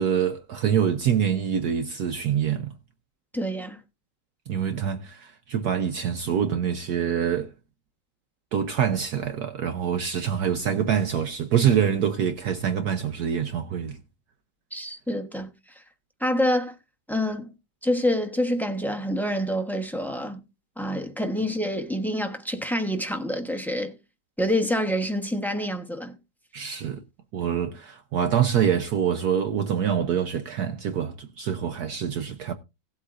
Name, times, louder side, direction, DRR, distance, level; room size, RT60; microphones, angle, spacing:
voice 1, 0.0-2.7 4.5-7.5 8.5-14.0 26.5-27.0 27.3-32.5, right 8 dB, 65° right, 1.2 m, -25 dB
voice 2, 3.3-3.8 14.7-15.5 16.2-16.7 17.1-17.5 17.8-20.4 20.8-23.9 24.4-26.2, equal, ahead, 0.6 m, -27 dB
17.5 x 8.0 x 2.5 m
omnidirectional pair, 2.0 m